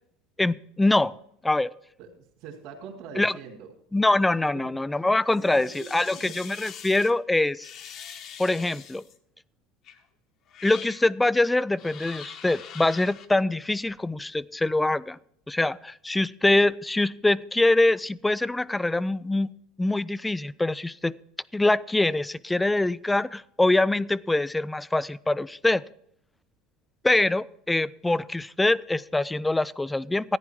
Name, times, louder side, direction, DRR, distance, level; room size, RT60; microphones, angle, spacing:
voice 1, 0.4-1.1 1.4-1.7 3.2-3.3 3.9-7.7 8.4-9.0 10.6-15.2 15.5-19.5 19.8-21.1 21.5-25.8 27.0-30.4, left 2 dB, 10° left, 19 dB, 0.4 m, -24 dB
voice 2, 2.0-3.7 4.5-5.0 5.3-6.7, right 6 dB, 60° right, -5 dB, 2.8 m, -44 dB
sound 1, 5.3-7.1 7.6-9.2 9.8-10.0 10.5-11.0 11.7-13.3, left 8 dB, 50° left, 1.3 m, -43 dB
14.5 x 9.8 x 4.6 m, 0.71 s
supercardioid pair, 115°, 0 cm